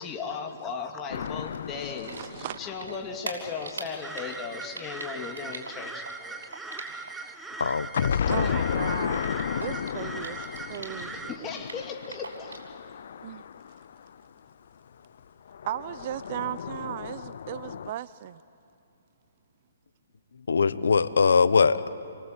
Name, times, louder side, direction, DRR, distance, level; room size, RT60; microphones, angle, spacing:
voice 1, 0.0-6.7 8.1-8.7 11.1-12.6, left 5 dB, 20° left, 2.7 m, -37 dB
sound 1, 1.1-3.9 8.0-14.2 15.5-17.9, left 8 dB, 65° left, 0.6 m, -33 dB
Typing, 1.1-2.6 2.8-7.3 7.5-11.1 11.4-12.7, right 3 dB, 85° right, 6.2 m, -41 dB
voice 2, 2.0-2.6 6.9-7.0 8.3-10.4 10.7-11.5 13.2-13.4 15.6-18.4, right 12 dB, 45° right, 0.6 m, -36 dB
sound 2, 4.0-11.4, right 3 dB, 10° right, 1.1 m, -40 dB
voice 3, 7.6-8.2 20.5-21.9, left 5 dB, 80° left, 1.1 m, -22 dB
30.0 x 23.5 x 8.2 m
hypercardioid pair, 140°, 0 cm